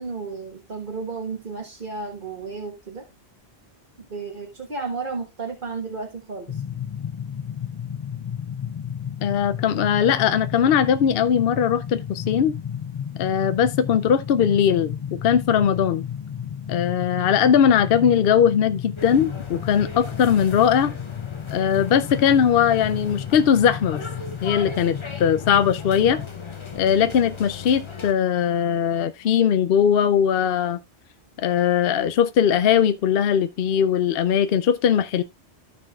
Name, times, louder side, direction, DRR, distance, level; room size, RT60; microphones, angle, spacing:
voice 1, 0.0-3.0 4.1-6.6, right 4 dB, 50° right, 1.4 m, -33 dB
sound 1, 6.5-26.3, left 8 dB, 45° left, 0.4 m, -33 dB
voice 2, 9.2-12.5 13.2-14.9 15.2-16.0 16.7-20.9 21.5-24.0 24.4-26.2 26.8-30.8 31.4-35.2, left 8 dB, 65° left, 0.8 m, -20 dB
sound 2, 19.0-28.1, left 5 dB, 30° left, 0.8 m, -37 dB
14.5 x 5.9 x 2.4 m
omnidirectional pair, 1.1 m